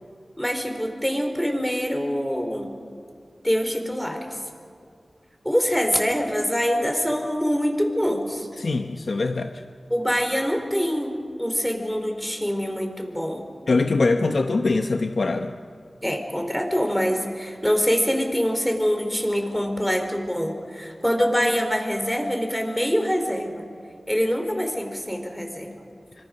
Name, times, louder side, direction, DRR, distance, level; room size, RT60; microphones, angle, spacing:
voice 1, 0.4-2.7 3.4-4.4 5.4-8.5 9.9-11.1 11.4-13.4 16.0-23.6 24.1-25.7, equal, 5° left, 4 dB, 4.3 m, -24 dB
voice 2, 8.6-9.6 13.7-15.5, left 3 dB, 70° left, 6 dB, 0.9 m, -23 dB
26.0 x 25.0 x 6.6 m, 2.2 s
wide cardioid pair, 55°, 0 cm